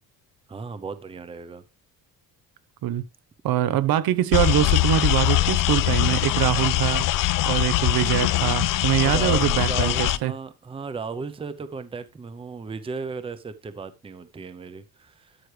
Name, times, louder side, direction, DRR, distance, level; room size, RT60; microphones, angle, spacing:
voice 1, 0.5-1.6 9.0-15.4, right 4 dB, 15° right, 0.6 m, -35 dB
voice 2, 3.4-7.1 7.4-10.3, right 12 dB, 70° right, 0.9 m, -23 dB
sound 1, 4.3-10.2, left 15 dB, 55° left, 0.6 m, -22 dB
12.5 x 6.2 x 3.3 m
cardioid pair, 140°, 38 cm